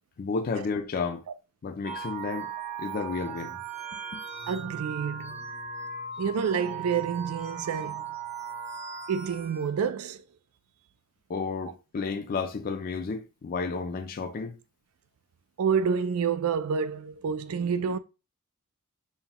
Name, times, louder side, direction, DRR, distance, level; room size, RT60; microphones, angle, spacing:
voice 1, 0.2-1.2 1.6-2.5 2.8-3.6 4.1-4.2 11.3-14.5, left 4 dB, 40° left, 0.4 m, -32 dB
sound 1, 1.8-9.8, right 6 dB, 30° right, 0.7 m, -38 dB
voice 2, 4.5-5.4 6.2-8.0 9.1-10.2 15.6-18.0, right 6 dB, 75° right, 0.4 m, -28 dB
5.5 x 2.2 x 2.9 m
head